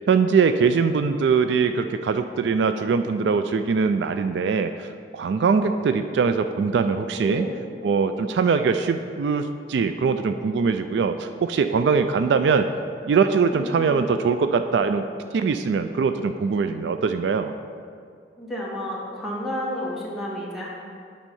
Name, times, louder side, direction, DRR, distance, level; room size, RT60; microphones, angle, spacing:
voice 1, 0.1-7.5 7.8-12.7 13.1-15.0 15.3-17.5, right 5 dB, 70° right, 9 dB, 0.3 m, -22 dB
voice 2, 7.2-7.6 13.5-14.1 18.4-20.7, equal, ahead, -5 dB, 1.5 m, -31 dB
8.9 x 4.3 x 5.4 m, 2.2 s
head